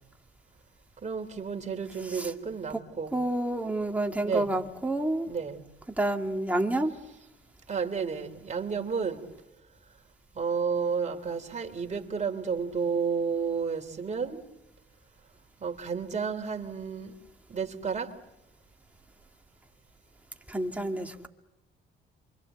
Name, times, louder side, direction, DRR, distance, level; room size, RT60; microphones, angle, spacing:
voice 1, 1.0-3.1 4.2-4.5 5.3-5.6 7.7-9.2 10.4-14.4 15.6-17.1 17.5-18.1, right 5 dB, 35° right, 3.4 m, -31 dB
voice 2, 3.1-5.3 6.0-6.9 20.5-21.3, right 1 dB, 5° right, 2.4 m, -29 dB
28.0 x 25.0 x 7.9 m
cardioid pair, 90°, 20 cm